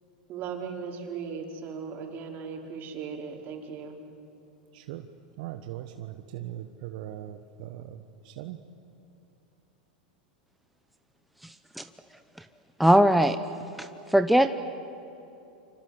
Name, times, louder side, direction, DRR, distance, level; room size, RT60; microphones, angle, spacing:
voice 1, 0.3-4.0, right 6 dB, 45° right, 2 dB, 5.0 m, -37 dB
voice 2, 4.7-5.1 5.4-8.6, right 12 dB, 60° right, 7 dB, 1.3 m, -40 dB
voice 3, 11.4-11.8 12.8-13.4 13.8-14.5, right 1 dB, ahead, 9 dB, 0.9 m, -21 dB
28.5 x 25.5 x 8.2 m, 2.9 s
hypercardioid pair, 110°, 5 cm